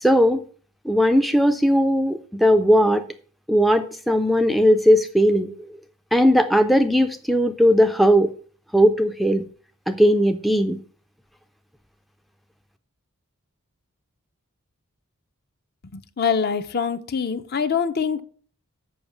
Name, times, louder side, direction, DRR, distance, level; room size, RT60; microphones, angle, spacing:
voice 1, 0.0-0.4 0.9-3.0 3.5-5.5 6.1-8.3 8.7-9.4 9.9-10.8, equal, ahead, 0.4 m, -18 dB
voice 2, 15.9-18.2, left 6 dB, 45° left, 0.6 m, -24 dB
7.1 x 5.6 x 7.0 m
head